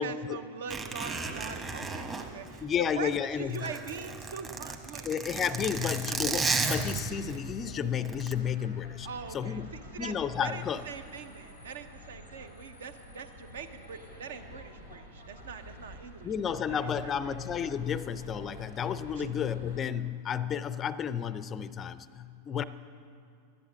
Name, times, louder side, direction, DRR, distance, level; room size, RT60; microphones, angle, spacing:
voice 1, 0.0-5.0 5.8-6.2 9.0-10.1 10.4-17.4 19.2-19.3, right 6 dB, 60° right, 9 dB, 0.8 m, -42 dB
Zipper (clothing), 0.7-3.1 3.4-7.4 8.0-8.3, right 4 dB, 20° right, 1.3 m, -33 dB
voice 2, 2.6-3.6 5.0-9.1 9.3-9.7 10.0-10.8 16.2-22.6, left 8 dB, 25° left, 16 dB, 0.4 m, -32 dB
sound 1, 6.4-19.8, equal, 90° right, 3.3 m, -49 dB
12.5 x 10.5 x 7.4 m, 2.4 s
figure-of-eight pair, 90°, 0 cm